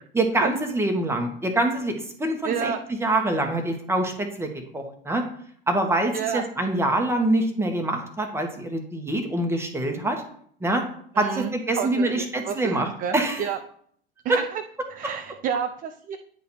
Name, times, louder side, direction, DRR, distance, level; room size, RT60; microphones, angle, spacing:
voice 1, 0.1-2.7 3.0-5.3 5.7-10.2 10.6-10.8 11.2-13.4 14.3-14.4, right 1 dB, 10° right, 4 dB, 1.4 m, -25 dB
voice 2, 2.4-2.8 6.1-6.4 11.2-13.6 14.2-14.6 14.9-16.2, right 8 dB, 30° right, 7 dB, 0.5 m, -30 dB
9.5 x 4.1 x 4.4 m, 0.63 s
figure-of-eight pair, 80°, 30 cm